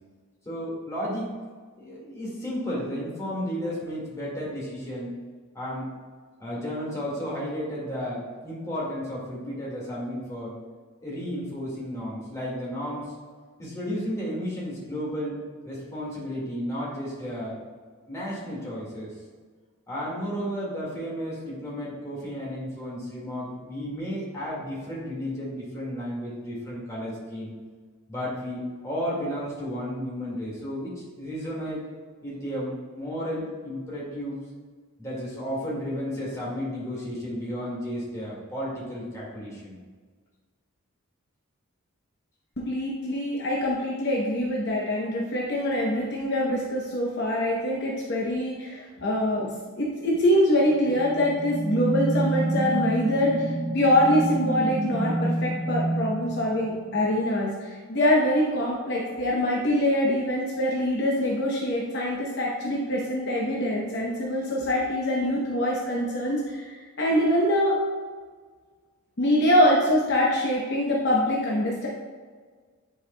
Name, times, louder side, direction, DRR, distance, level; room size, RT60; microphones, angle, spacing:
voice 1, 0.5-1.3 1.8-5.2 5.5-5.9 6.4-10.5 11.0-13.1 13.6-17.6 18.1-19.2 19.9-27.5 28.1-31.9 32.2-34.4 35.0-39.8, equal, 15° left, -6 dB, 1.8 m, -33 dB
voice 2, 42.6-49.5 49.8-67.8 69.2-71.9, left 1 dB, 50° left, -3 dB, 0.8 m, -24 dB
sound 1, 50.7-57.2, right 2 dB, 25° right, 0.4 m, -29 dB
9.6 x 4.8 x 2.2 m, 1.5 s
head